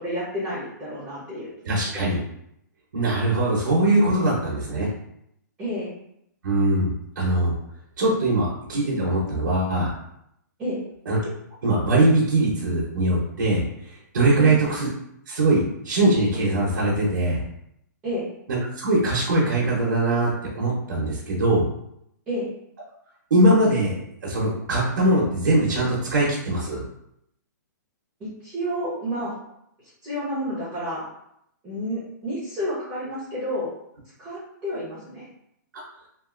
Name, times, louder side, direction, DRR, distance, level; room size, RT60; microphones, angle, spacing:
voice 1, 0.0-1.5 1.9-2.0 5.6-5.9 10.6-10.8 14.4-14.5 18.0-18.3 22.3-22.5 28.2-29.4 30.0-31.1 31.6-33.7 34.2-35.3, equal, 10° right, -10 dB, 0.9 m, -30 dB
voice 2, 1.6-2.2 2.9-4.9 6.4-7.5 8.0-9.9 11.1-11.2 11.6-14.9 15.3-17.4 18.5-21.7 23.3-24.0 24.2-26.8 35.7-35.8, right 2 dB, 65° right, -5 dB, 0.9 m, -21 dB
2.9 x 2.6 x 2.4 m, 0.76 s
hypercardioid pair, 170°, 10 cm